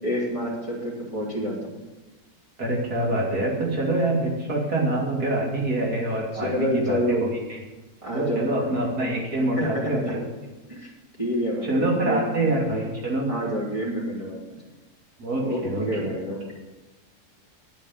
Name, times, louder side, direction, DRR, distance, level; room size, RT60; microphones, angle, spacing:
voice 1, 0.0-1.8 6.3-7.3 8.0-8.7 9.6-10.1 10.7-10.9 11.2-12.3 13.3-14.4 15.4-16.4, equal, 20° right, -7 dB, 3.1 m, -28 dB
voice 2, 2.6-7.2 7.5-7.6 8.1-10.2 11.6-13.3 15.2-15.9, right 1 dB, 80° right, -2 dB, 3.4 m, -25 dB
9.8 x 9.1 x 7.4 m, 1.1 s
omnidirectional pair, 1.6 m